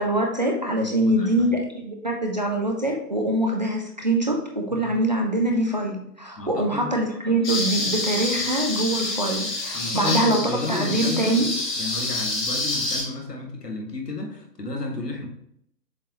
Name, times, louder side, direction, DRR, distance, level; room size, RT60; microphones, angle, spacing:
voice 1, 0.0-11.5, right 1 dB, 30° right, 0 dB, 0.5 m, -24 dB
voice 2, 0.8-1.5 6.4-6.9 9.7-11.3 11.8-15.3, left 2 dB, 70° left, 1 dB, 1.8 m, -32 dB
sound 1, 7.4-13.0, left 2 dB, 30° left, 2.3 m, -27 dB
7.2 x 5.0 x 2.9 m, 0.71 s
figure-of-eight pair, 135°, 49 cm